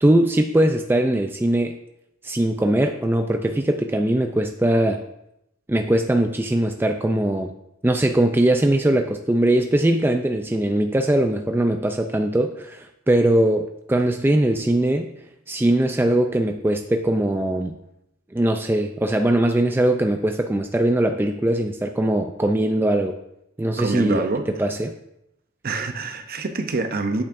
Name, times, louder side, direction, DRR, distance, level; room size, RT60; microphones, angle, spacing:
voice 1, 0.0-1.8 2.2-5.0 5.7-7.5 7.8-15.1 15.5-17.8 18.3-23.2 23.6-24.9, right 1 dB, 10° right, 5 dB, 0.3 m, -21 dB
voice 2, 23.8-24.5 25.6-27.2, right 3 dB, 45° right, 7 dB, 0.7 m, -26 dB
10.5 x 8.7 x 2.6 m, 0.83 s
head